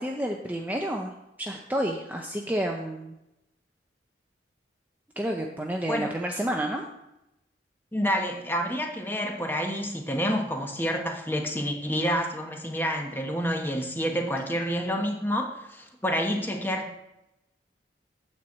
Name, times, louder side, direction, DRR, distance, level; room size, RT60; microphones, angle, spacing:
voice 1, 0.0-3.2 5.2-6.9, right 1 dB, 10° right, 1 dB, 0.6 m, -30 dB
voice 2, 7.9-17.0, equal, 10° left, 2 dB, 1.1 m, -28 dB
9.1 x 4.5 x 7.3 m, 0.91 s
head